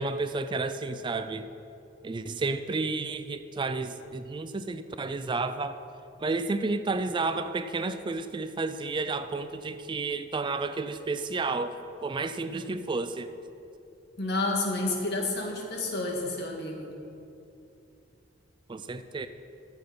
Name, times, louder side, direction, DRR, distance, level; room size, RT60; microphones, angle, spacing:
voice 1, 0.0-1.5 2.0-5.8 6.2-13.3 18.7-19.3, right 3 dB, 25° right, 11 dB, 0.3 m, -31 dB
voice 2, 14.2-16.9, left 2 dB, 55° left, 1 dB, 1.8 m, -30 dB
13.0 x 7.7 x 5.6 m, 2.7 s
head